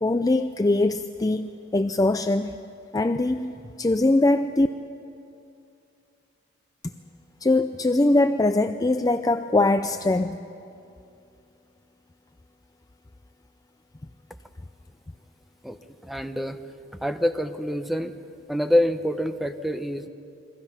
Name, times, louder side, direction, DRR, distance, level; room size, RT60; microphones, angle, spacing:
voice 1, 0.0-2.6 2.9-4.7 7.4-10.4, left 2 dB, 20° left, 9 dB, 0.4 m, -22 dB
voice 2, 16.0-16.6 17.0-18.1 18.5-20.1, left 1 dB, ahead, 8 dB, 0.8 m, -26 dB
29.0 x 22.5 x 5.8 m, 2.6 s
head